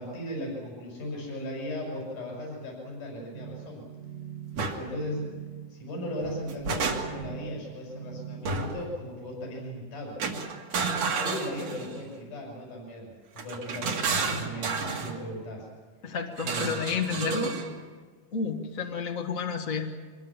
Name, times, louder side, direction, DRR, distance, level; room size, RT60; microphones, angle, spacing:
voice 1, 0.0-3.9 4.7-5.3 5.7-10.2 11.2-15.7 16.4-16.9, left 1 dB, 80° left, -1 dB, 7.3 m, -37 dB
sound 1, 3.3-8.4, right 9 dB, 35° right, 1.0 m, -42 dB
sound 2, 4.6-4.8 6.2-7.3 8.5-8.9 10.2-12.0 13.4-15.2 16.4-17.7, right 4 dB, 55° right, 3.0 m, -31 dB
voice 2, 16.0-17.6 18.3-20.0, left 5 dB, 40° left, 2 dB, 1.3 m, -31 dB
24.0 x 21.0 x 7.2 m, 1.5 s
omnidirectional pair, 3.6 m